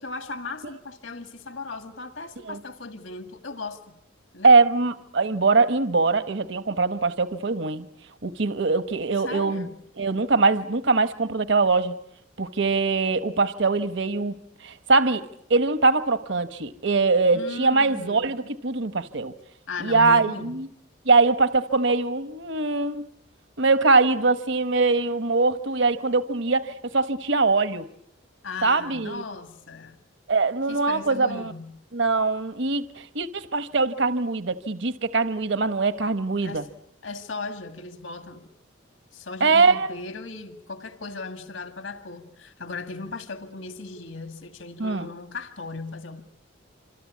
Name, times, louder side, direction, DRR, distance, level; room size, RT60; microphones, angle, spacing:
voice 1, 0.0-4.0 4.3-4.5 9.2-9.8 17.3-18.3 19.7-20.6 28.4-30.0 30.7-31.8 36.4-36.7 37.0-38.5 39.1-46.2, left 3 dB, 70° left, 2.0 m, -37 dB
voice 2, 4.4-7.9 8.2-9.7 10.0-11.9 12.4-14.4 14.6-15.2 15.5-19.3 19.8-20.7 21.1-23.1 23.6-27.9 28.6-29.2 30.3-31.5 31.9-36.6 39.4-39.9 44.8-45.1, right 3 dB, 65° right, 1.0 m, -22 dB
26.5 x 26.5 x 8.4 m
head